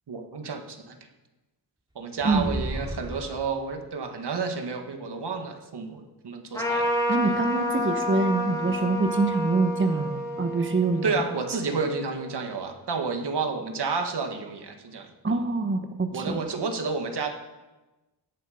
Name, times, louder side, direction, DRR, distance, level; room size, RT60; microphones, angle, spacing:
voice 1, 0.1-1.0 2.0-6.9 10.9-15.1 16.1-17.3, right 4 dB, 80° right, 4 dB, 1.8 m, -30 dB
sound 1, 2.2-3.8, right 1 dB, 10° right, 2.8 m, -34 dB
Trumpet, 6.5-12.4, equal, 10° left, 2.6 m, -30 dB
voice 2, 7.1-11.1 15.2-16.4, right 3 dB, 30° right, 6 dB, 1.2 m, -25 dB
17.0 x 11.0 x 5.1 m, 1.1 s
wide cardioid pair, 115°, 40 cm